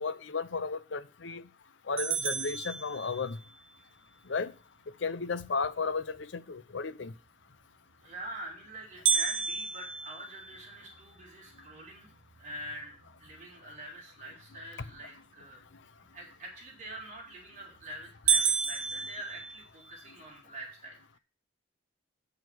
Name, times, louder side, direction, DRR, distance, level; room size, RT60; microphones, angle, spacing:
voice 1, 0.0-1.4 1.9-3.4 4.3-4.5 5.0-7.1, left 4 dB, 70° left, 0.7 m, -34 dB
sound 1, 2.0-3.5 9.0-11.2 11.7-11.8 12.3-12.4 13.1-13.4 17.0-17.4 17.8-17.9 18.3-20.0, right 7 dB, 80° right, 0.7 m, -31 dB
voice 2, 8.0-12.1 12.4-15.6 16.1-21.0, right 1 dB, 40° right, 4.0 m, -45 dB
8.8 x 6.7 x 6.1 m
head